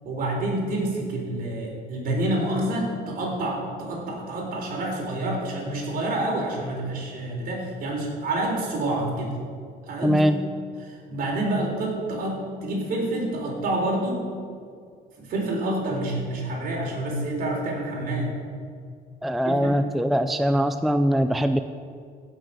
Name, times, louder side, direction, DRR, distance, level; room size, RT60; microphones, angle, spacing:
voice 1, 0.0-9.3 9.8-10.2 10.9-14.2 15.2-18.4 19.4-19.8, right 1 dB, 60° right, -1 dB, 3.9 m, -28 dB
voice 2, 10.0-10.4 19.2-21.6, equal, ahead, 9 dB, 0.4 m, -22 dB
15.5 x 6.3 x 6.4 m, 2.1 s
cardioid pair, 110°, 17 cm